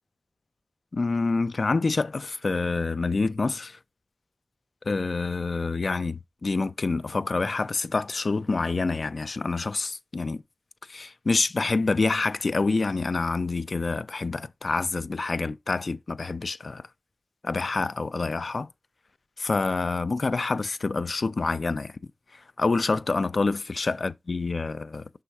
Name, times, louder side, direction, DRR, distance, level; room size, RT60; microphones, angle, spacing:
voice 1, 0.9-3.8 4.8-10.4 10.8-16.9 17.4-18.7 19.4-22.0 22.3-25.1, left 3 dB, 70° left, 0.3 m, -27 dB
6.3 x 3.3 x 4.6 m
wide cardioid pair, 65°, 0 cm